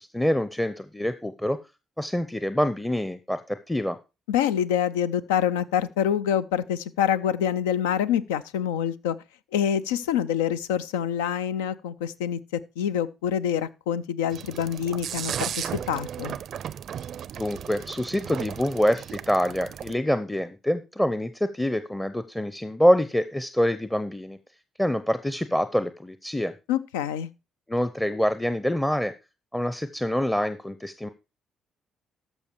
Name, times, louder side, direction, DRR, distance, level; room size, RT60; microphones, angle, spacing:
voice 1, 0.0-1.6 2.0-4.0 17.4-24.4 24.8-26.5 27.7-29.1 29.5-31.1, equal, 10° left, 0.7 m, -26 dB
voice 2, 4.3-9.2 9.5-16.4 26.7-27.3, left 9 dB, 85° left, 0.4 m, -26 dB
sound 1, 14.3-19.9, right 9 dB, 60° right, 0.4 m, -35 dB
13.5 x 5.3 x 4.5 m
hypercardioid pair, 45°, 0 cm